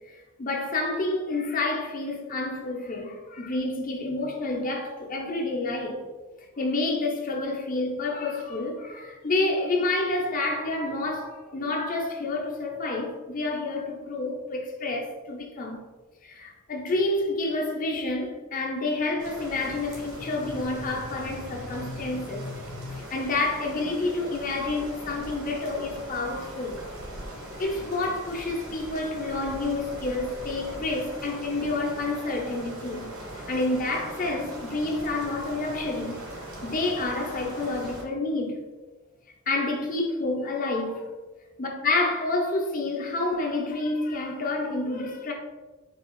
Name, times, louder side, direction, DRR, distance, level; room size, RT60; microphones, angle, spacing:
voice 1, 0.0-6.0 6.6-15.8 16.2-26.8 27.6-33.1 33.5-36.2 36.6-38.6 39.5-41.1 41.6-45.3, left 2 dB, 40° left, 0.6 m, -29 dB
sound 1, 19.2-38.0, right 1 dB, 70° right, 1.1 m, -40 dB
4.1 x 2.8 x 3.0 m
head